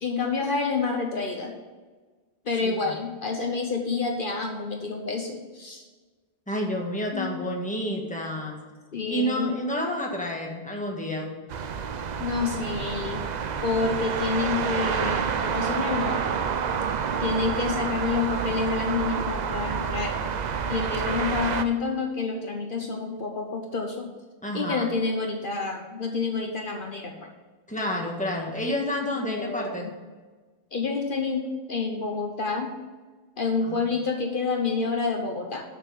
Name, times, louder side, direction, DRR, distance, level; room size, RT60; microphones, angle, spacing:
voice 1, 0.0-1.5 2.5-5.8 7.1-7.3 8.9-9.6 12.2-13.3 13.6-16.2 17.2-20.2 20.7-24.1 24.5-27.3 29.2-29.9 30.7-32.7 33.4-35.6, left 4 dB, 60° left, 2 dB, 1.1 m, -28 dB
voice 2, 2.6-3.0 6.5-8.6 9.1-11.3 24.4-24.9 27.7-29.9 33.6-33.9, equal, 5° left, 0 dB, 1.6 m, -30 dB
sound 1, 11.5-21.7, right 6 dB, 50° right, 0.6 m, -28 dB
6.9 x 6.8 x 7.4 m, 1.4 s
omnidirectional pair, 1.0 m